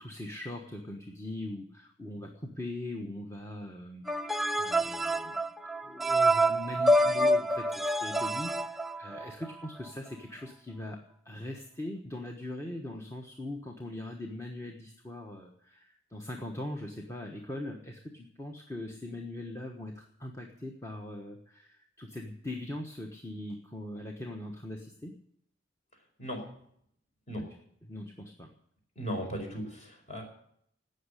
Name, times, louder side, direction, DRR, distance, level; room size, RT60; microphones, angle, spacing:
voice 1, 0.0-5.4 5.8-11.0 11.2-25.1 27.3-27.4 27.8-28.5, left 1 dB, 15° left, 1 dB, 1.2 m, -41 dB
sound 1, 4.1-9.5, right 1 dB, ahead, 0.5 m, -27 dB
voice 2, 29.0-30.2, equal, 35° left, 2 dB, 4.7 m, -36 dB
17.5 x 6.6 x 9.9 m, 0.69 s
head